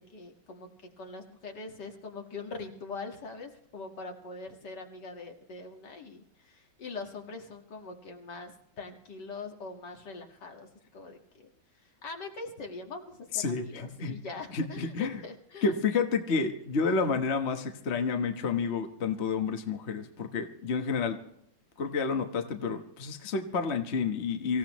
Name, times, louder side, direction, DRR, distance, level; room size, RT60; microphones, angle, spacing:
voice 1, 0.1-0.7 1.0-11.5 12.0-15.8, left 3 dB, 65° left, 3 dB, 2.4 m, -42 dB
voice 2, 13.3-14.1 14.5-15.2 15.6-21.2 21.8-24.6, left 5 dB, 40° left, 5 dB, 1.3 m, -30 dB
25.0 x 15.5 x 3.1 m, 0.71 s
omnidirectional pair, 2.0 m